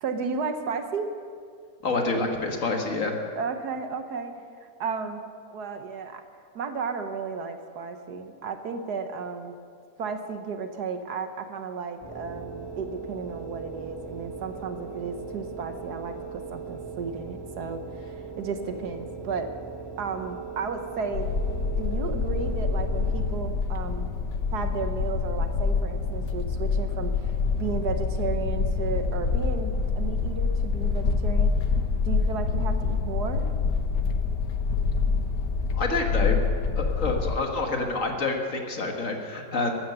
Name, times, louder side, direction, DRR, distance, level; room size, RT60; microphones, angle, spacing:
voice 1, 0.0-1.1 3.4-4.3 4.6-5.2 5.5-6.2 6.5-9.6 10.0-19.5 20.0-21.3 21.8-24.1 24.5-31.5 32.0-33.5, right 5 dB, 65° right, 7 dB, 1.4 m, -33 dB
voice 2, 1.8-3.2 35.7-36.4 36.8-39.8, left 3 dB, 45° left, 3 dB, 1.7 m, -27 dB
sound 1, 12.0-23.7, right 5 dB, 10° left, 4.4 m, -39 dB
sound 2, 21.1-37.3, left 4 dB, 75° left, 1.6 m, -26 dB
14.5 x 12.5 x 6.8 m, 2.3 s
omnidirectional pair, 1.9 m